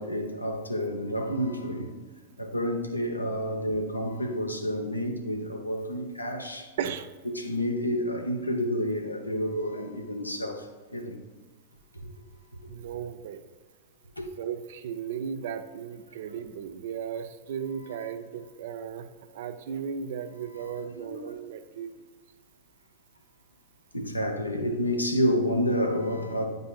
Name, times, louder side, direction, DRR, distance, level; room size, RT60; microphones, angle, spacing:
voice 1, 0.0-1.9 2.4-6.7 7.3-10.7 10.9-11.2 14.2-14.3 20.6-20.7 21.0-21.3 23.9-26.5, equal, 85° left, 0.8 m, -29 dB
voice 2, 6.8-7.1 12.7-13.4 14.4-19.1 19.3-21.9, right 7 dB, 55° right, 0.5 m, -35 dB
9.4 x 5.2 x 2.3 m
figure-of-eight pair, 90°, 0 cm